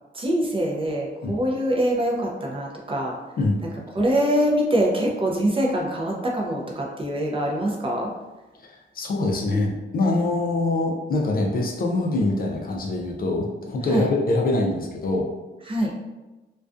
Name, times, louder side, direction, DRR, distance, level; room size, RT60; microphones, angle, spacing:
voice 1, 0.1-3.1 4.0-8.1 13.9-14.1 15.7-15.9, right 1 dB, 25° right, -2 dB, 0.4 m, -24 dB
voice 2, 8.9-15.3, left 2 dB, 45° left, 0 dB, 0.4 m, -24 dB
2.3 x 2.2 x 2.4 m, 1.1 s
cardioid pair, 100°, 21 cm